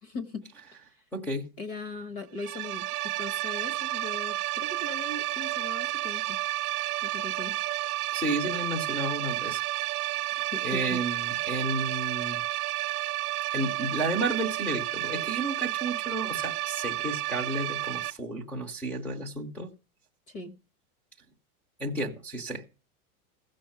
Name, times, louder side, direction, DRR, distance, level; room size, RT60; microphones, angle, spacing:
voice 1, 0.0-0.4 0.7-0.8 1.6-2.8 3.2-6.4 7.0-7.6 10.5-11.0 20.3-20.5, left 3 dB, 40° left, 1.2 m, -39 dB
voice 2, 1.1-1.5 8.1-9.6 10.1-10.3 10.6-12.4 13.5-19.7 21.8-22.6, right 2 dB, 5° left, 0.6 m, -32 dB
sound 1, 2.4-18.1, right 16 dB, 85° right, 0.6 m, -31 dB
15.5 x 6.4 x 5.7 m
supercardioid pair, 180°, 43 cm